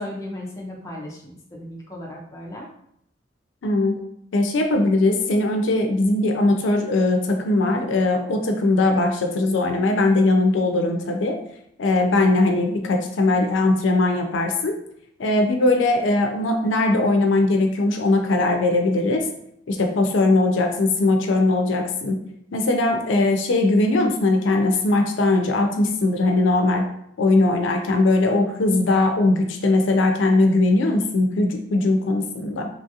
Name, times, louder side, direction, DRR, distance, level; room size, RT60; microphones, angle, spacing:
voice 1, 0.0-2.7, left 1 dB, 15° left, -2 dB, 0.5 m, -35 dB
voice 2, 3.6-4.0 4.3-11.4 11.8-14.8 15.2-19.2 19.7-22.2 22.5-26.8 27.2-32.7, left 2 dB, 80° left, 4 dB, 0.4 m, -20 dB
3.0 x 2.4 x 2.7 m, 0.74 s
head